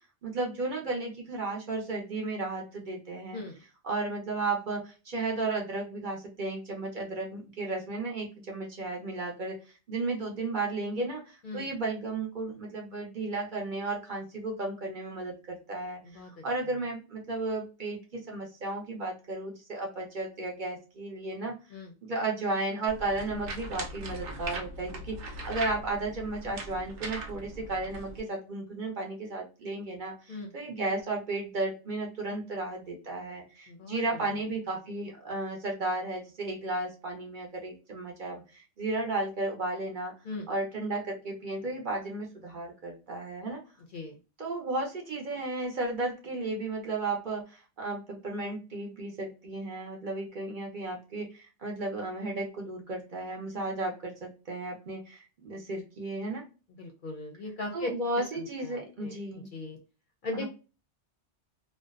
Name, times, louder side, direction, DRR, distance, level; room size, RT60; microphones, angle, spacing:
voice 1, 0.2-3.4 3.8-9.6 9.9-21.6 22.0-40.1 40.5-43.6 44.4-56.4 57.7-59.5 60.3-60.5, right 2 dB, 50° right, 0 dB, 0.7 m, -34 dB
voice 2, 16.0-16.7 21.7-21.9 30.3-30.5 33.7-34.3 40.2-40.5 43.9-44.2 56.8-59.8 60.2-60.5, left 2 dB, 55° left, 2 dB, 0.6 m, -39 dB
sound 1, 22.9-28.2, right 2 dB, 80° right, 1.0 m, -40 dB
2.6 x 2.1 x 2.3 m, 0.32 s
omnidirectional pair, 1.2 m